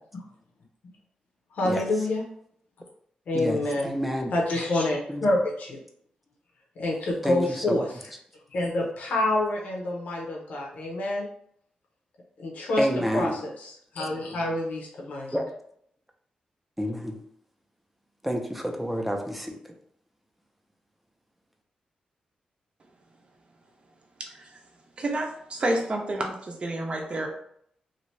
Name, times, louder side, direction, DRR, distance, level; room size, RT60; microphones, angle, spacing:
voice 1, 1.5-2.2 3.3-3.9 4.3-5.8 6.8-7.8 8.5-11.3 12.4-12.9 13.1-13.3 13.9-15.3, left 1 dB, 80° left, -1 dB, 0.8 m, -27 dB
voice 2, 3.3-4.3 5.1-5.3 7.2-7.8 12.8-13.4 15.3-15.5 16.8-17.2 18.2-19.6, equal, 5° right, 3 dB, 0.5 m, -29 dB
voice 3, 24.2-24.6 25.0-27.3, right 1 dB, 45° right, 1 dB, 0.7 m, -29 dB
2.8 x 2.6 x 3.1 m, 0.67 s
cardioid pair, 80°, 3 cm